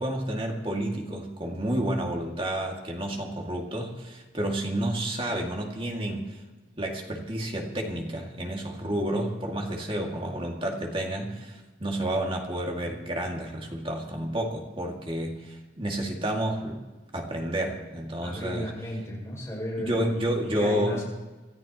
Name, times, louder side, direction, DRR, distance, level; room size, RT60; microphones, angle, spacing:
voice 1, 0.0-6.4 6.8-16.8 17.1-18.7 19.8-21.0, right 1 dB, 30° right, 1 dB, 2.2 m, -30 dB
voice 2, 18.2-20.0 20.5-21.0, equal, 15° left, -5 dB, 6.2 m, -34 dB
27.0 x 14.0 x 3.0 m, 1.2 s
head